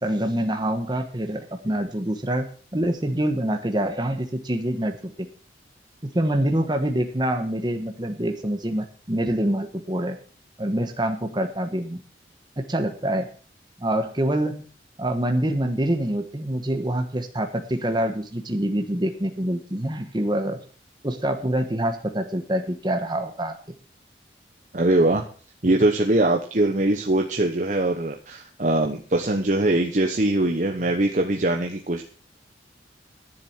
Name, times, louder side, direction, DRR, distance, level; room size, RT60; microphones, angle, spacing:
voice 1, 0.0-2.5 2.7-5.3 6.1-10.2 10.6-12.0 12.6-13.3 13.8-14.7 15.0-20.6 21.0-23.5, right 1 dB, 25° right, 5 dB, 1.3 m, -25 dB
voice 2, 24.7-25.2 25.6-32.0, right 1 dB, 45° right, 3 dB, 1.0 m, -22 dB
10.5 x 7.5 x 7.4 m, 0.42 s
head